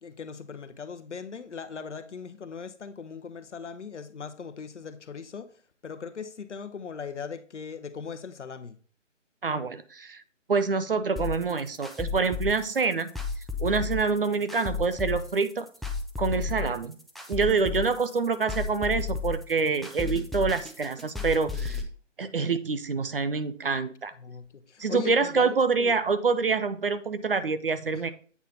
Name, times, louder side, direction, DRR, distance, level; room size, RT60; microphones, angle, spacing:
voice 1, 0.0-5.5 5.8-8.8 24.2-25.9 27.9-28.1, left 6 dB, 65° left, 0.9 m, -39 dB
voice 2, 9.4-10.2 10.5-13.1 13.6-15.7 16.2-17.0 17.3-21.8 22.2-24.1 24.8-28.1, right 4 dB, 45° right, 0.6 m, -26 dB
sound 1, 11.2-21.8, left 4 dB, ahead, 0.3 m, -33 dB
8.3 x 4.0 x 4.2 m
figure-of-eight pair, 160°, 38 cm